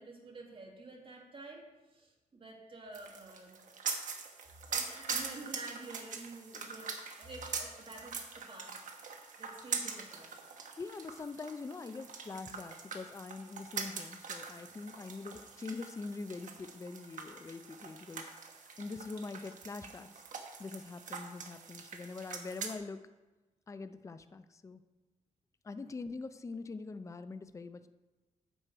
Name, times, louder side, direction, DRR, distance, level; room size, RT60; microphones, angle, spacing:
voice 1, 0.0-3.6 4.7-6.9 7.2-8.8 9.4-10.5, right 2 dB, 40° right, 0 dB, 1.8 m, -49 dB
sound 1, 2.9-22.7, right 5 dB, 70° right, 1.1 m, -43 dB
voice 2, 10.8-18.3 18.8-20.2 20.6-23.0 23.7-24.8 25.6-27.9, left 4 dB, 20° left, 11 dB, 0.4 m, -44 dB
8.9 x 6.4 x 4.5 m, 1.2 s
cardioid pair, 100°, 14 cm